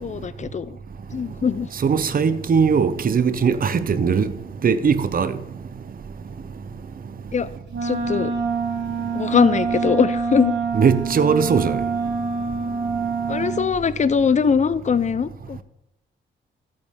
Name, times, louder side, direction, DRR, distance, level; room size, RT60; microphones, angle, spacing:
voice 1, 0.0-0.8 1.1-1.7 7.3-7.5 7.8-8.3 9.1-10.5 13.3-15.6, left 6 dB, 35° left, 0.6 m, -21 dB
voice 2, 1.8-4.3 4.6-5.3 10.7-11.8, right 6 dB, 45° right, 0.9 m, -19 dB
Wind instrument woodwind instrument, 7.7-13.7, right 5 dB, 60° right, 1.4 m, -26 dB
13.5 x 7.9 x 3.8 m
cardioid pair, 80°, 20 cm